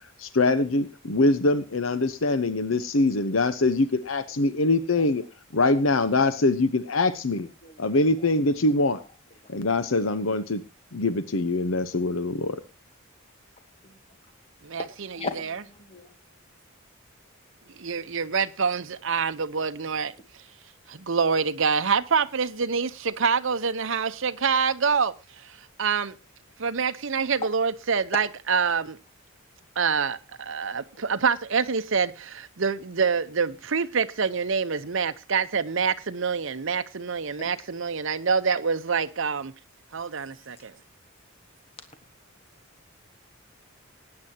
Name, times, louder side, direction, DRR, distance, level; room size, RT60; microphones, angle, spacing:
voice 1, 0.2-5.2 5.5-7.5 7.8-9.0 9.5-10.6 10.9-12.6, left 2 dB, 70° left, 0.9 m, -23 dB
voice 2, 14.6-15.2 17.8-20.1 20.9-25.1 25.4-26.1 26.6-29.0 29.8-39.5 39.9-40.7, right 5 dB, 65° right, 0.8 m, -26 dB
voice 3, 15.1-16.1 37.4-37.5, left 3 dB, 30° left, 1.5 m, -37 dB
19.5 x 9.7 x 2.8 m
head